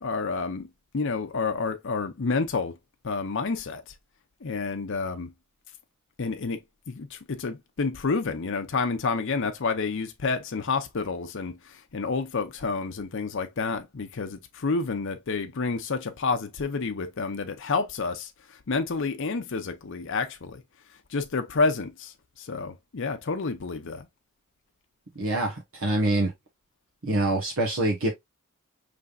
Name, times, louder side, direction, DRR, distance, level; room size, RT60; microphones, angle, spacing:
voice 1, 0.0-0.7 0.9-2.7 3.0-3.8 4.4-5.3 6.2-18.3 18.7-20.6 21.1-24.1, left 4 dB, 65° left, 0.7 m, -29 dB
voice 2, 25.1-26.3 27.0-28.1, right 2 dB, 70° right, 1.1 m, -25 dB
5.2 x 3.3 x 2.4 m
head